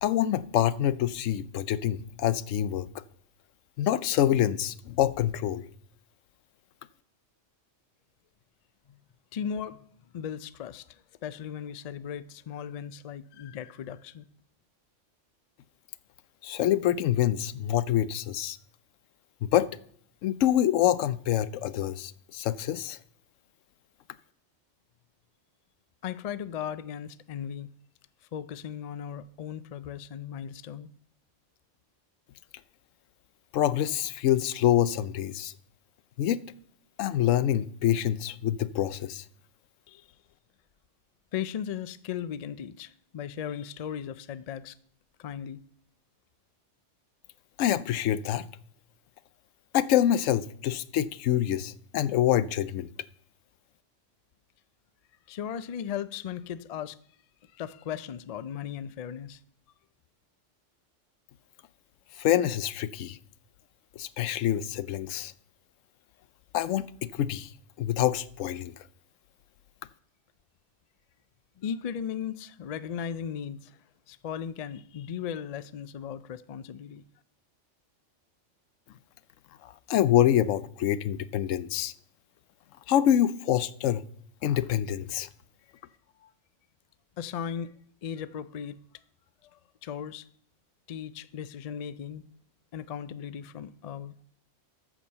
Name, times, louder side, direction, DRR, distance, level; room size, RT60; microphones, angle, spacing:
voice 1, 0.0-3.0 3.8-5.7 16.4-18.6 19.4-19.7 20.2-23.0 33.5-35.5 36.2-36.4 37.0-39.2 47.6-48.5 49.7-52.9 62.2-63.2 64.0-65.3 66.5-67.5 67.8-68.7 79.6-81.9 82.9-84.0 84.4-85.3, left 11 dB, 90° left, 1.0 m, -26 dB
voice 2, 9.3-9.8 10.1-14.3 26.0-27.7 28.3-30.9 39.9-40.1 41.3-44.8 45.2-45.6 55.3-57.0 57.5-59.4 71.6-73.8 74.1-77.0 86.2-86.3 87.2-87.7 88.0-88.8 89.4-90.2 90.9-92.2 92.7-94.2, left 8 dB, 75° left, 0.3 m, -37 dB
14.0 x 5.0 x 6.7 m
omnidirectional pair, 1.3 m